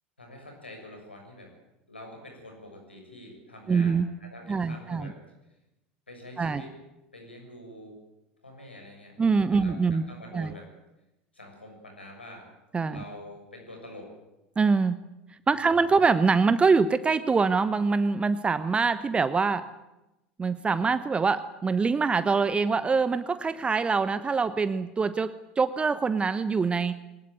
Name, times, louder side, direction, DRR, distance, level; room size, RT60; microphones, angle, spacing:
voice 1, 0.2-1.5 1.9-5.2 6.1-6.7 7.1-8.0 8.4-9.2 9.5-10.7 11.3-12.5 12.9-14.1 15.5-15.9, left 1 dB, 85° left, 2 dB, 6.9 m, -46 dB
voice 2, 3.7-4.1 4.5-5.1 6.4-6.6 9.2-10.0 10.3-10.5 12.7-13.0 14.6-15.0 15.5-19.6 20.4-26.9, right 4 dB, 20° right, 14 dB, 1.0 m, -24 dB
22.0 x 20.0 x 9.3 m, 0.95 s
figure-of-eight pair, 75°, 6 cm